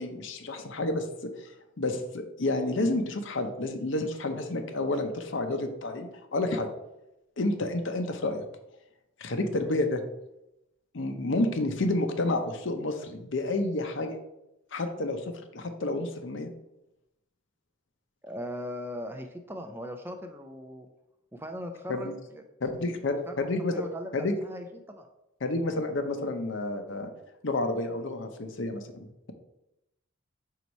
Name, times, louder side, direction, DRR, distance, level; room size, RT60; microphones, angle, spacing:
voice 1, 0.0-1.5 1.8-6.7 7.4-8.4 9.2-10.0 10.9-14.2 14.7-16.5 21.9-22.1 22.6-23.7 24.1-24.3 25.4-27.1 27.4-29.3, left 2 dB, 60° left, 6 dB, 0.7 m, -30 dB
voice 2, 18.2-20.9 21.3-22.4 23.3-23.4 23.7-25.1, equal, 10° right, 5 dB, 0.4 m, -39 dB
4.7 x 4.1 x 5.2 m, 0.90 s
head